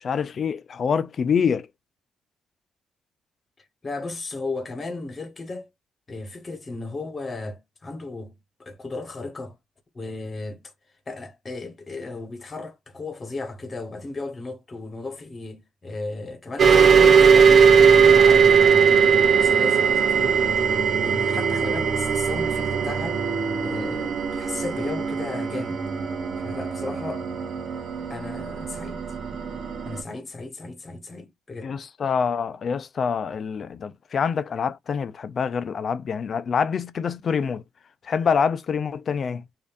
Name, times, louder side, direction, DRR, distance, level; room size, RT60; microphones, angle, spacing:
voice 1, 0.0-1.7 31.6-37.6 38.0-39.4, left 6 dB, 50° left, 0.4 m, -26 dB
voice 2, 3.8-5.7 6.1-9.6 9.9-10.6 11.1-17.5 17.7-20.4 21.0-23.2 23.6-25.8 26.4-27.3 28.1-29.1 29.8-31.8, left 3 dB, 35° left, 1.2 m, -35 dB
sound 1, 16.6-30.0, right 6 dB, 50° right, 0.6 m, -19 dB
5.0 x 2.7 x 2.5 m
cardioid pair, 90°, 0 cm